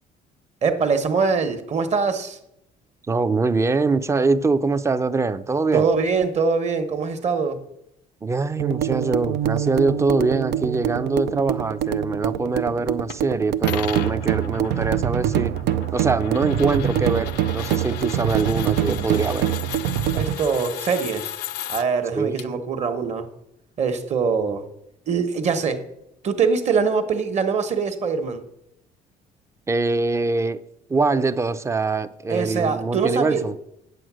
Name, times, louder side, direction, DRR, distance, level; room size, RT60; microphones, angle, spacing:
voice 1, 0.6-2.4 5.7-7.6 18.9-19.0 20.1-21.3 21.7-23.3 23.8-24.6 25.1-25.8 26.2-28.4 32.3-33.4, right 5 dB, 40° right, 8 dB, 1.2 m, -23 dB
voice 2, 3.1-5.9 8.2-19.5 22.2-22.6 29.7-30.6 30.9-33.6, right 3 dB, 15° right, 13 dB, 0.5 m, -23 dB
sound 1, 8.6-20.4, right 10 dB, 80° right, 0.5 m, -25 dB
sound 2, 13.1-13.2 13.6-21.8 22.4-22.5, left 12 dB, 85° left, 0.5 m, -36 dB
8.7 x 7.9 x 6.1 m, 0.81 s
cardioid pair, 110°, 17 cm